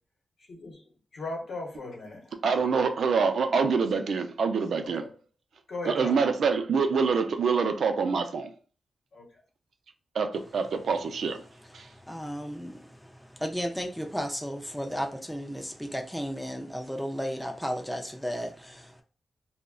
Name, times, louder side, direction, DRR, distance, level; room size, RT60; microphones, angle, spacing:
voice 1, 0.5-0.8 1.1-2.2 4.8-5.1 5.7-6.1 9.1-9.2, left 2 dB, 55° left, 0.8 m, -37 dB
voice 2, 2.4-5.1 5.9-8.5 10.2-11.4, right 5 dB, 70° right, 0.4 m, -25 dB
voice 3, 10.3-19.0, equal, ahead, 0.3 m, -35 dB
2.3 x 2.0 x 3.6 m
wide cardioid pair, 155°, 0 cm